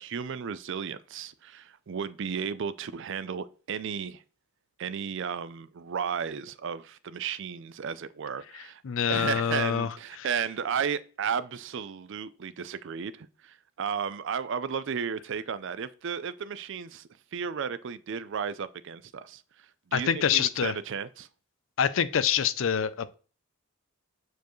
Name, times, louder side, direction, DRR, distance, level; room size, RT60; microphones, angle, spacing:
voice 1, 0.0-4.2 4.8-21.3, right 7 dB, 55° right, 0.4 m, -34 dB
voice 2, 8.8-9.9 10.2-10.3 19.9-20.7 21.8-23.1, left 8 dB, 60° left, 0.4 m, -26 dB
7.0 x 4.6 x 3.0 m
head